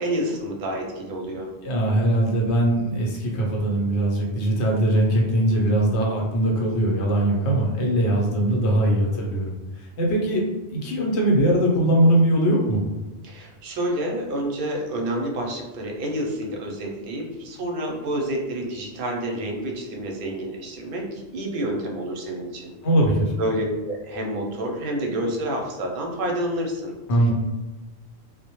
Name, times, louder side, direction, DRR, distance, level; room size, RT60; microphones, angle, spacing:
voice 1, 0.0-1.5 13.2-22.7 23.4-27.0, right 1 dB, 60° right, 1 dB, 0.7 m, -28 dB
voice 2, 1.6-12.8 22.8-23.3 27.1-27.3, right 1 dB, 75° left, -1 dB, 0.9 m, -21 dB
2.1 x 2.0 x 2.9 m, 1.1 s
omnidirectional pair, 1.2 m